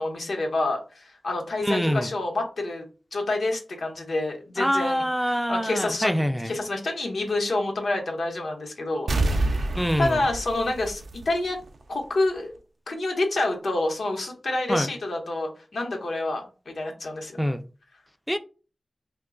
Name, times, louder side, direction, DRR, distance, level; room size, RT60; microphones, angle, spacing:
voice 1, 0.0-2.8 3.1-5.0 5.5-9.5 10.0-11.6 11.9-12.5 12.9-17.4, left 2 dB, 85° left, 0.8 m, -28 dB
voice 2, 1.6-2.1 4.6-6.5 9.7-10.2 14.7-14.9 17.4-17.6 18.3-18.4, equal, ahead, 0.3 m, -25 dB
sound 1, 9.1-11.7 12.0-12.1, right 2 dB, 85° right, 0.4 m, -27 dB
3.0 x 2.2 x 3.6 m
wide cardioid pair, 85°, 0 cm